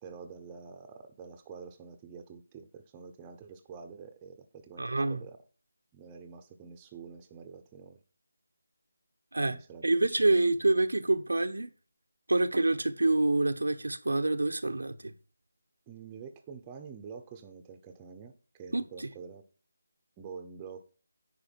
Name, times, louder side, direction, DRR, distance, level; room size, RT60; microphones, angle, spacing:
voice 1, 0.0-5.4 5.9-8.0 9.4-9.9 10.2-10.6 15.9-19.4 20.2-20.9, right 6 dB, 15° right, 0.9 m, -47 dB
voice 2, 4.8-5.2 9.3-9.6 9.8-11.7 12.3-15.1 18.7-19.1, right 2 dB, 90° right, 1.0 m, -27 dB
9.7 x 4.8 x 4.6 m
figure-of-eight pair, 165°, 0 cm